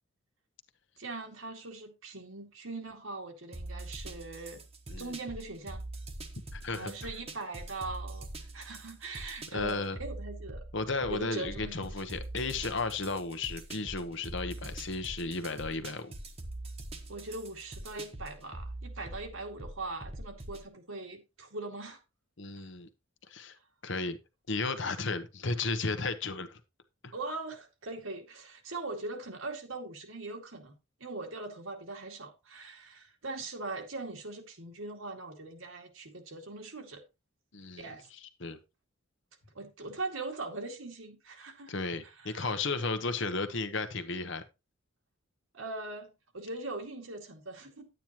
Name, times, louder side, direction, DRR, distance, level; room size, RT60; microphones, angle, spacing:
voice 1, 1.0-4.6 5.0-5.8 6.7-10.7 11.1-11.9 17.1-22.0 22.6-22.7 27.1-37.0 37.8-38.1 39.5-41.7 42.0-42.7 45.5-47.9, right 3 dB, 75° right, 2.3 m, -41 dB
sound 1, 3.5-20.7, right 1 dB, 30° right, 1.2 m, -44 dB
voice 2, 6.5-6.9 9.5-10.0 10.7-16.1 22.4-22.9 23.3-23.6 23.8-24.2 24.5-26.6 27.0-27.1 37.5-38.6 41.7-44.4, left 3 dB, 60° left, 1.1 m, -34 dB
10.5 x 9.2 x 3.0 m
head